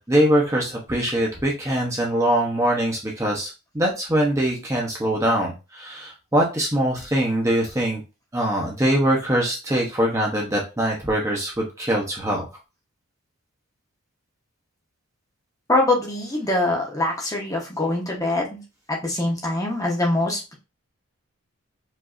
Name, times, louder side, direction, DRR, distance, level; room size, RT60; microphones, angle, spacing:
voice 1, 0.0-8.0 8.3-12.4, right 1 dB, 15° right, -1 dB, 0.7 m, -23 dB
voice 2, 15.7-18.6 18.9-20.5, left 2 dB, 15° left, -1 dB, 0.8 m, -23 dB
4.8 x 2.6 x 2.5 m, 0.28 s
head